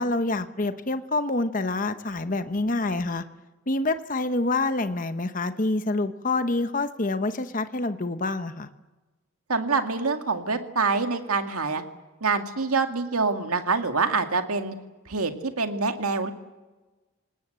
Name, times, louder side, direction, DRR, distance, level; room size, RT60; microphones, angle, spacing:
voice 1, 0.0-3.2 3.7-8.7, left 2 dB, 35° left, 10 dB, 0.9 m, -27 dB
voice 2, 9.5-11.8 12.2-14.8 15.1-16.3, right 4 dB, 80° right, 6 dB, 2.2 m, -25 dB
28.0 x 19.0 x 8.1 m, 1.2 s
head